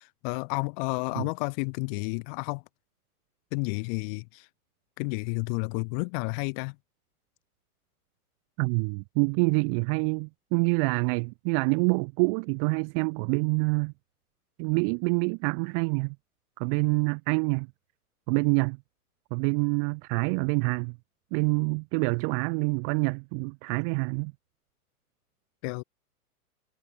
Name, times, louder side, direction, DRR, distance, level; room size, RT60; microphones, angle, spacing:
voice 1, 0.0-2.6 3.5-4.5 5.0-6.8 25.6-25.8, left 35 dB, 35° left, 1.7 m, -31 dB
voice 2, 8.6-13.9 14.6-16.1 16.6-17.7 18.3-18.8 19.3-21.0 21.3-24.3, right 40 dB or more, 25° right, 0.8 m, -26 dB
figure-of-eight pair, 110°, 45 cm